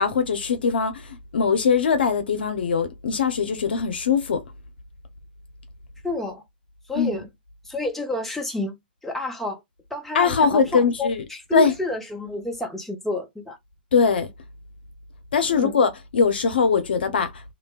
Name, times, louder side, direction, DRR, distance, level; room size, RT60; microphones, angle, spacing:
voice 1, 0.0-4.4 6.9-7.2 10.1-11.2 11.5-11.7 13.9-14.3 15.3-17.4, left 5 dB, 80° left, 0.6 m, -21 dB
voice 2, 6.0-6.4 6.9-7.3 7.6-9.6 9.9-13.6 15.5-15.8, left 2 dB, 5° left, 0.9 m, -30 dB
3.2 x 2.2 x 2.2 m
hypercardioid pair, 115°, 5 cm